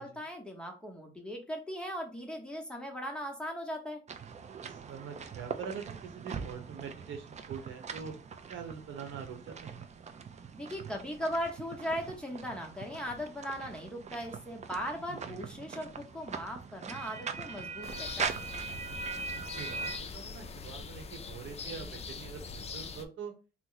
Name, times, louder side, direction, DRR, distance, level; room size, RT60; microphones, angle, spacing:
voice 1, 0.0-4.0 10.6-18.3, equal, 5° left, 0 dB, 0.8 m, -38 dB
sound 1, 4.1-20.0, right 5 dB, 35° right, 0.4 m, -41 dB
voice 2, 4.9-8.1 8.5-9.8 15.1-15.4 19.6-23.3, right 6 dB, 75° right, 5 dB, 0.8 m, -44 dB
sound 2, 17.8-23.1, left 5 dB, 30° left, 0.4 m, -43 dB
2.9 x 2.0 x 3.8 m, 0.32 s
cardioid pair, 90°, 20 cm